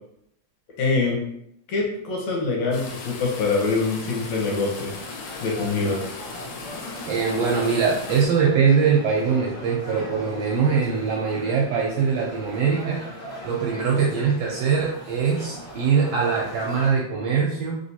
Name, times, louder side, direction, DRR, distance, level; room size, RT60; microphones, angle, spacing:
voice 1, 0.8-1.2 1.7-4.9 5.4-6.0, left 3 dB, 70° left, -1 dB, 2.0 m, -24 dB
sound 1, 2.7-8.3, left 4 dB, 90° left, 2.1 m, -38 dB
sound 2, 4.4-16.9, left 1 dB, 50° left, 1.4 m, -39 dB
voice 2, 7.1-13.0 13.4-17.8, right 6 dB, 80° right, -3 dB, 1.4 m, -22 dB
4.5 x 3.3 x 2.8 m, 0.76 s
omnidirectional pair, 3.5 m